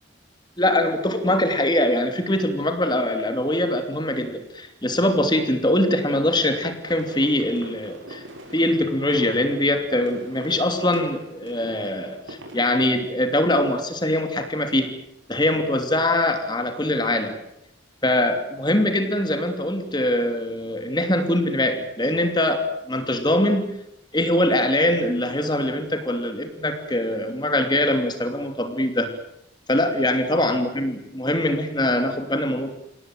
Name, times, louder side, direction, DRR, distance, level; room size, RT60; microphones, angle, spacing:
voice 1, 0.6-8.2 8.5-15.0 15.3-17.4 18.0-23.7 24.1-29.1 29.7-32.7, left 1 dB, 20° left, 7 dB, 2.9 m, -23 dB
sound 1, 6.9-12.7, right 1 dB, 90° right, 7.1 m, -42 dB
28.0 x 18.0 x 9.1 m, 0.79 s
head